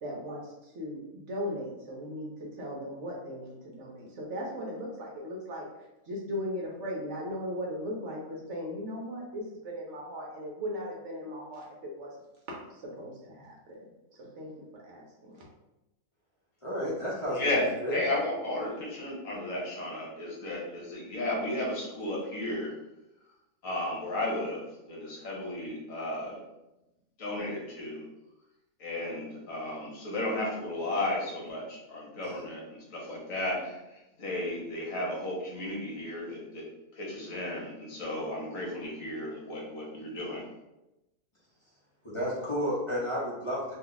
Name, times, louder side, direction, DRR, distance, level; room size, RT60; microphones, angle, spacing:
voice 1, 0.0-12.1 12.5-13.9 14.1-15.4, equal, 65° right, -2 dB, 0.8 m, -38 dB
voice 2, 16.6-17.5 17.8-18.0 32.2-32.4 42.0-43.7, equal, 30° left, -7 dB, 0.6 m, -31 dB
voice 3, 17.3-22.7 23.6-26.4 27.2-28.0 28.8-36.6 36.9-40.5, left 1 dB, 65° left, -3 dB, 1.2 m, -34 dB
2.7 x 2.3 x 3.8 m, 0.96 s
omnidirectional pair, 1.5 m